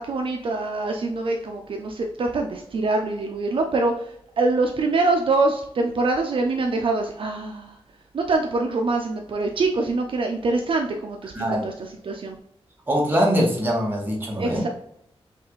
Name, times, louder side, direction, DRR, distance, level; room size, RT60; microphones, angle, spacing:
voice 1, 0.0-7.8 8.1-12.4 14.4-14.7, right 3 dB, 55° right, 2 dB, 0.4 m, -24 dB
voice 2, 12.9-14.6, equal, 20° right, -3 dB, 1.1 m, -22 dB
5.6 x 2.4 x 3.0 m, 0.73 s
wide cardioid pair, 160°, 10 cm